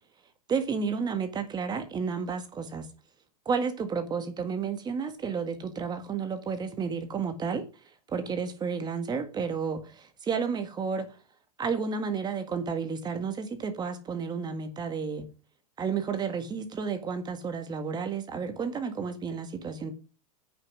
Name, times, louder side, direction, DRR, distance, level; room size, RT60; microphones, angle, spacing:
voice 1, 0.5-2.9 3.4-11.2 11.6-15.3 15.8-19.9, right 5 dB, 20° right, 1.7 m, -31 dB
9.1 x 6.0 x 6.1 m
hypercardioid pair, 125°, 19 cm